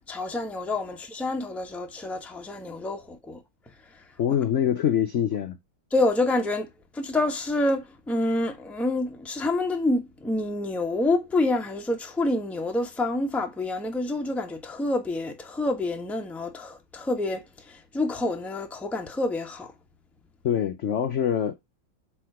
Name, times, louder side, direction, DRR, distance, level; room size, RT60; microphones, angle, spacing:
voice 1, 0.1-3.4 3.9-4.0 5.9-6.7 6.9-19.7, left 2 dB, ahead, 0.7 m, -27 dB
voice 2, 4.2-5.6 20.4-21.5, left 9 dB, 75° left, 0.6 m, -24 dB
7.8 x 3.9 x 4.8 m
omnidirectional pair, 2.1 m